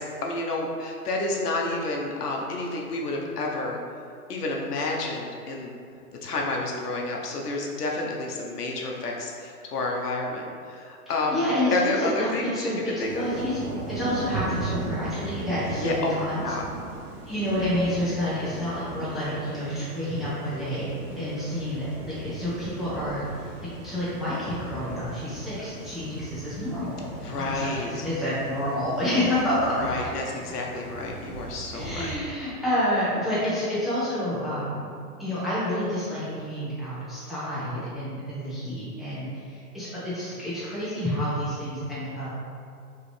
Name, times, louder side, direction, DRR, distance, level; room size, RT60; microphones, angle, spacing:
voice 1, 0.0-3.8 4.3-5.7 6.2-11.4 11.7-13.3 15.6-16.1 16.4-16.6 27.1-28.1 29.8-32.1, left 2 dB, 80° left, -1 dB, 1.0 m, -30 dB
voice 2, 11.3-13.6 13.9-16.3 17.3-20.9 21.2-23.5 23.8-27.1 27.4-29.8 31.7-34.9 35.2-42.4, left 1 dB, ahead, -12 dB, 0.9 m, -29 dB
Thunder / Rain, 13.0-32.2, right 2 dB, 65° right, 1.0 m, -37 dB
4.8 x 3.3 x 3.3 m, 2.4 s
hypercardioid pair, 140°, 46 cm